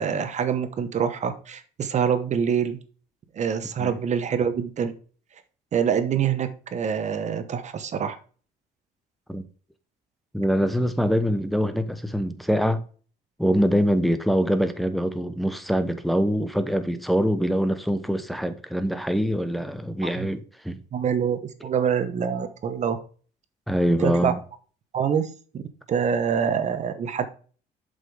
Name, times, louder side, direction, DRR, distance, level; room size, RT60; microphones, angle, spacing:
voice 1, 0.0-2.8 3.3-4.9 5.7-8.2 20.0-20.3 20.9-23.0 24.0-24.3 24.9-25.6 25.9-27.3, right 7 dB, 45° right, 1.0 m, -25 dB
voice 2, 10.3-12.8 13.4-20.8 23.7-24.3, equal, ahead, 0.8 m, -24 dB
7.5 x 5.3 x 3.4 m
cardioid pair, 110°, 17 cm